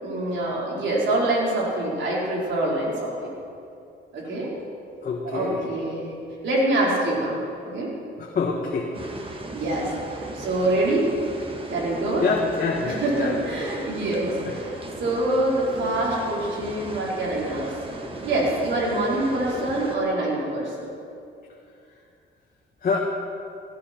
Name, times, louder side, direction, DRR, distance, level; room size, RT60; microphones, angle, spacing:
voice 1, 0.0-3.1 4.1-4.5 5.2-6.1 6.4-7.9 9.5-11.1 11.7-12.3 12.8-14.7 15.0-17.7 18.2-20.7, right 1 dB, 70° right, -4 dB, 4.4 m, -25 dB
voice 2, 5.0-5.7 8.2-8.9 12.2-13.3 14.5-14.6 22.8-23.0, left 5 dB, 45° left, -1 dB, 1.5 m, -26 dB
sound 1, 8.9-19.9, right 2 dB, 25° right, 1.8 m, -37 dB
18.0 x 12.5 x 4.5 m, 2.6 s
cardioid pair, 90°, 20 cm